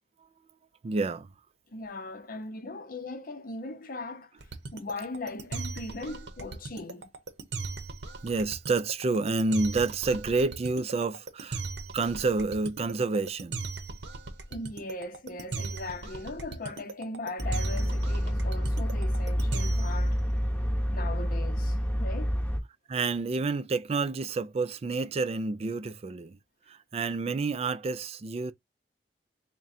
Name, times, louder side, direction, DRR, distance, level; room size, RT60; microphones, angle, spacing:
voice 1, 0.8-1.3 8.2-11.6 11.9-13.6 22.9-26.4 26.7-28.5, right 3 dB, 35° right, 0.4 m, -29 dB
voice 2, 1.7-4.3 4.7-7.1 14.5-20.2 20.9-22.3, left 2 dB, 55° left, 0.6 m, -39 dB
sound 1, 4.4-20.0, right 4 dB, 75° right, 0.7 m, -38 dB
sound 2, 17.4-22.6, equal, 10° left, 0.8 m, -28 dB
3.6 x 2.2 x 4.1 m
head